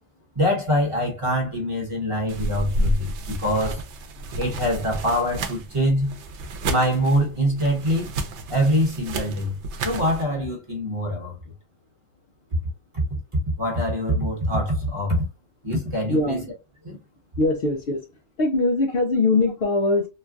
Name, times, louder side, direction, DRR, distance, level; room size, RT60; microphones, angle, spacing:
voice 1, 0.3-3.8 4.4-6.2 6.6-8.1 8.5-9.6 9.8-11.4 12.9-13.2 13.6-15.3 15.6-16.4 16.8-17.0, equal, 30° right, 1.1 m, -24 dB
sound 1, 2.3-10.2, right 1 dB, 75° right, 0.9 m, -31 dB
voice 2, 16.1-16.5 17.4-18.1 18.4-20.1, left 2 dB, 60° left, 0.8 m, -21 dB
3.2 x 2.3 x 2.4 m
omnidirectional pair, 1.2 m